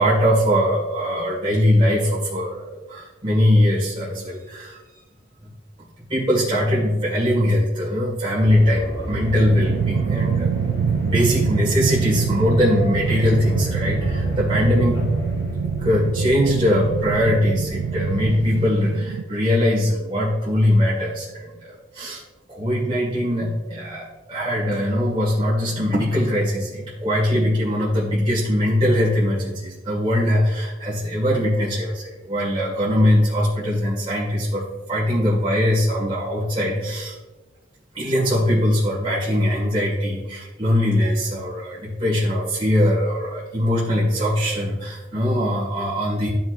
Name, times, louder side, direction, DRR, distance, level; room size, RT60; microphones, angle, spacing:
voice 1, 0.0-4.8 5.4-5.5 6.1-10.5 11.0-15.0 15.8-21.6 21.9-22.2 22.5-34.6 34.9-37.2 37.9-46.3, left 1 dB, 30° right, -7 dB, 1.9 m, -21 dB
sound 1, 8.4-18.4, equal, 50° left, 1.5 m, -32 dB
sound 2, 9.1-19.2, right 6 dB, 80° right, 0.3 m, -25 dB
12.5 x 5.6 x 2.6 m, 1.1 s
head